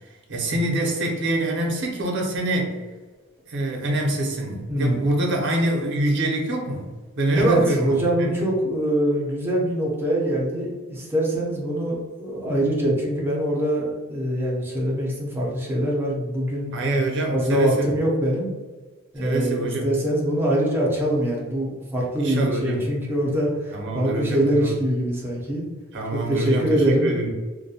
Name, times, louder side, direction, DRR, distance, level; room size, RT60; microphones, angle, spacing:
voice 1, 0.3-2.8 3.5-6.9 7.2-8.3 16.7-17.9 19.2-19.9 22.2-22.8 23.7-24.8 25.9-27.3, right 1 dB, 60° right, 0 dB, 0.6 m, -25 dB
voice 2, 4.7-5.0 7.3-16.7 17.3-18.5 19.1-25.6 26.1-27.1, right 1 dB, 10° right, -4 dB, 0.6 m, -23 dB
2.4 x 2.2 x 2.7 m, 1.3 s
head